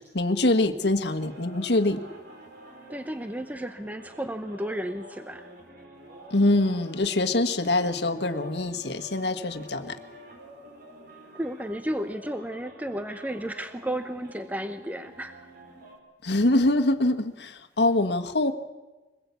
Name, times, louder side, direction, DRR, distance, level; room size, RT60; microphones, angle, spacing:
voice 1, 0.1-2.0 6.3-9.9 16.2-18.5, left 2 dB, 65° left, 6 dB, 1.5 m, -24 dB
sound 1, 1.0-16.0, equal, 55° right, 4.8 m, -48 dB
voice 2, 2.9-5.5 11.3-15.5, right 1 dB, 10° right, 9 dB, 0.7 m, -33 dB
23.5 x 20.5 x 8.3 m, 1.2 s
head